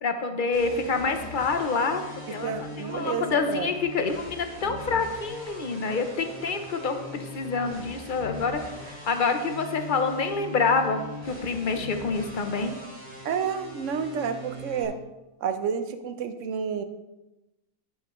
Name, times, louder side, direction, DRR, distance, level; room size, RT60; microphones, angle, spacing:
voice 1, 0.0-12.8, left 4 dB, 45° left, 7 dB, 0.8 m, -27 dB
sound 1, 0.5-14.8, left 1 dB, 15° right, 2.4 m, -41 dB
voice 2, 2.4-3.7 13.2-15.0 15.4-16.8, right 6 dB, 65° right, 9 dB, 1.0 m, -30 dB
10.5 x 6.7 x 3.1 m, 1.0 s
omnidirectional pair, 1.4 m